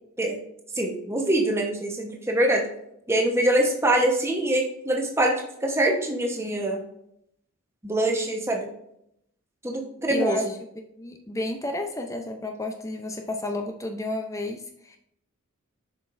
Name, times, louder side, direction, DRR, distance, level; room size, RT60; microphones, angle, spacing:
voice 1, 0.8-2.6 3.1-6.8 7.8-8.7 9.6-10.4, right 1 dB, 10° right, 1 dB, 1.1 m, -24 dB
voice 2, 10.1-10.6 11.0-15.0, left 2 dB, 15° left, 4 dB, 0.5 m, -31 dB
7.2 x 5.8 x 2.6 m, 0.76 s
head